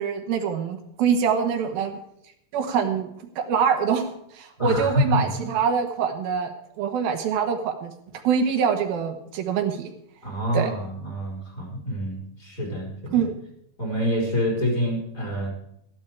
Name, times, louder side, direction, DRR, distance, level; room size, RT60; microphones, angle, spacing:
voice 1, 0.0-2.0 2.5-3.1 3.4-7.9 8.2-9.9 10.5-10.7 13.1-13.3, right 7 dB, 75° right, 4 dB, 3.2 m, -24 dB
voice 2, 4.6-5.2 10.2-13.2 13.8-15.5, equal, 20° left, -1 dB, 4.5 m, -26 dB
14.5 x 12.0 x 4.8 m, 0.75 s
omnidirectional pair, 4.3 m